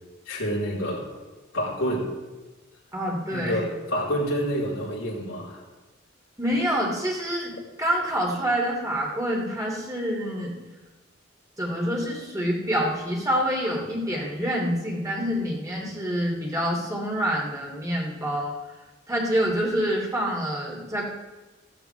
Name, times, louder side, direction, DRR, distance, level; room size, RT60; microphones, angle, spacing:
voice 1, 0.3-1.1 1.5-2.1 3.3-5.6, equal, 85° left, -5 dB, 4.1 m, -28 dB
voice 2, 2.9-3.6 6.4-10.5 11.6-18.5 19.1-21.1, equal, 15° right, -2 dB, 2.8 m, -27 dB
15.5 x 14.0 x 3.5 m, 1.2 s
head